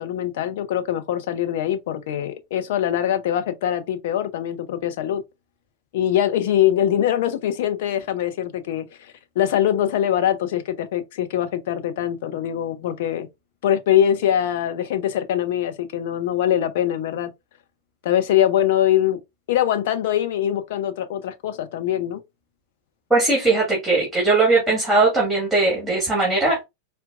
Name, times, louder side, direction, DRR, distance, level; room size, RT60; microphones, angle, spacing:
voice 1, 0.0-5.2 5.9-13.3 13.6-17.3 18.0-19.2 19.5-22.2, left 11 dB, 55° left, 0.5 m, -23 dB
voice 2, 23.1-26.6, right 3 dB, ahead, 1.7 m, -19 dB
4.4 x 2.2 x 2.4 m
figure-of-eight pair, 90°, 0 cm